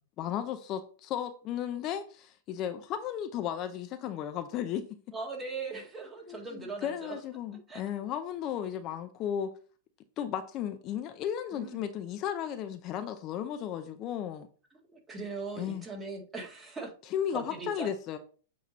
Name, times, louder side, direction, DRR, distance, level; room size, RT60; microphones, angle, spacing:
voice 1, 0.2-4.8 6.3-9.5 10.2-14.5 15.6-15.8 17.1-18.2, left 9 dB, 40° left, 0.6 m, -34 dB
voice 2, 5.1-7.2 7.7-8.0 11.5-11.8 14.9-16.9 17.3-17.9, right 4 dB, 20° right, 2.0 m, -40 dB
8.2 x 3.0 x 4.0 m
hypercardioid pair, 115°, 0 cm